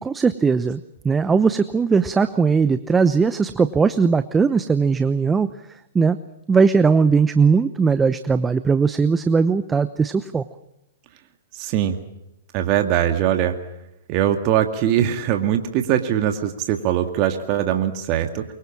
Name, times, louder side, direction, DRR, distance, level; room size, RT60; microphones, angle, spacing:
voice 1, 0.0-6.2 6.5-10.4, right 5 dB, 15° right, 12 dB, 0.9 m, -19 dB
voice 2, 11.6-12.0 12.5-13.6 14.1-18.4, right 10 dB, 40° right, 5 dB, 2.2 m, -21 dB
24.5 x 23.5 x 7.4 m, 0.90 s
hypercardioid pair, 120°, 0 cm